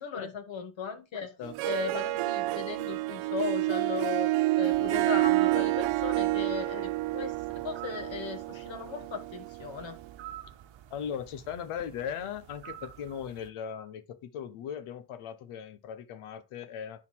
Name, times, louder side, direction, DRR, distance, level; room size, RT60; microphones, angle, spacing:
voice 1, 0.0-1.3 1.7-10.0, left 6 dB, 65° left, 2.2 m, -37 dB
Harp, 1.4-10.0, right 19 dB, 85° right, 0.6 m, -29 dB
sound 1, 4.7-13.5, right 11 dB, 65° right, 1.1 m, -49 dB
voice 2, 10.9-17.1, left 8 dB, 90° left, 1.1 m, -38 dB
10.0 x 4.0 x 4.6 m
cardioid pair, 65°, 49 cm